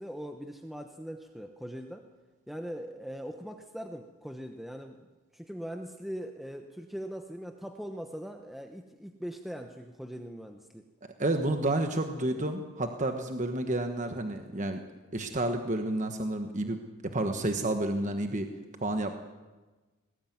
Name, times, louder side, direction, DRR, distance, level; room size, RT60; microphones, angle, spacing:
voice 1, 0.0-2.0 2.5-5.0 5.3-10.8, equal, ahead, 4 dB, 1.0 m, -41 dB
voice 2, 11.2-14.8 15.1-18.5 18.8-19.1, right 1 dB, 35° right, 5 dB, 1.3 m, -30 dB
20.5 x 17.5 x 9.5 m, 1.2 s
head